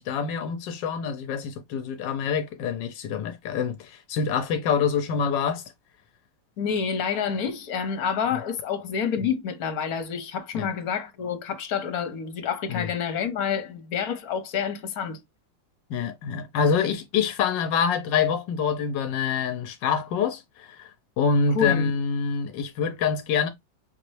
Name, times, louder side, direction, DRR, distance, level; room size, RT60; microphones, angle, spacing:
voice 1, 0.0-5.6 10.5-10.7 12.7-12.9 15.9-23.5, left 6 dB, 85° left, 1.3 m, -26 dB
voice 2, 6.6-15.2 21.5-21.9, left 7 dB, 60° left, 1.4 m, -28 dB
5.7 x 2.9 x 3.1 m
omnidirectional pair, 1.9 m